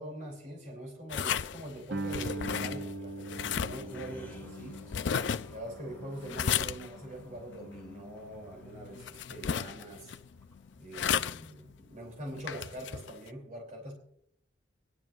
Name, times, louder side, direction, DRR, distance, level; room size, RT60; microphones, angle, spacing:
voice 1, 0.0-4.8 5.5-10.2 10.8-14.0, right 1 dB, 45° right, 2.9 m, -43 dB
sound 1, 1.0-12.5, left 1 dB, 10° left, 1.8 m, -58 dB
sound 2, 1.1-13.3, left 8 dB, 70° left, 0.4 m, -35 dB
Guitar, 1.9-7.3, right 2 dB, 65° right, 0.8 m, -41 dB
25.5 x 11.0 x 2.4 m
head